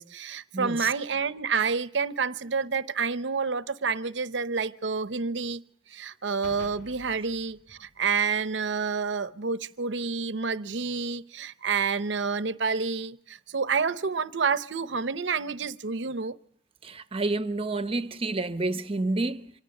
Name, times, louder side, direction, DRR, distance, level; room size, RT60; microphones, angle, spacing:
voice 1, 0.0-5.6 5.9-16.4, right 5 dB, 70° right, 0.7 m, -29 dB
voice 2, 0.5-0.9 16.8-19.5, right 2 dB, 30° right, 0.8 m, -29 dB
sound 1, 6.4-8.9, left 1 dB, 65° left, 1.4 m, -50 dB
25.0 x 17.5 x 6.5 m
head